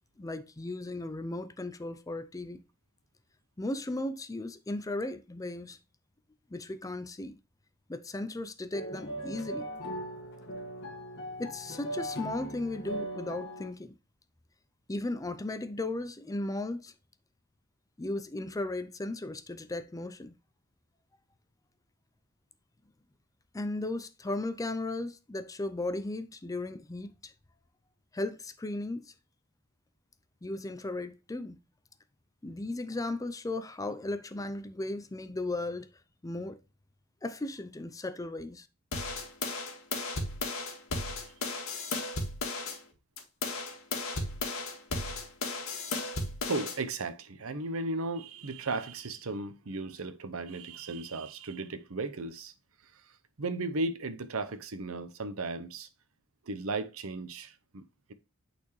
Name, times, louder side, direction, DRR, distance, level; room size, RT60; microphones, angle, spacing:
voice 1, 0.2-2.6 3.6-5.8 6.5-7.4 7.9-9.7 11.4-14.0 14.9-16.9 18.0-20.3 23.5-27.3 28.1-29.1 30.4-31.6 32.4-35.9 36.2-36.6 37.2-38.7, left 2 dB, 15° left, 0.5 m, -36 dB
sound 1, 8.7-13.7, right 1 dB, 50° left, 1.7 m, -39 dB
sound 2, 38.9-42.8 43.2-46.8, left 3 dB, 70° left, 1.9 m, -35 dB
voice 2, 46.5-52.5 52.8-55.9 56.4-58.1, right 3 dB, 70° right, 0.8 m, -36 dB
8.5 x 4.3 x 3.1 m
head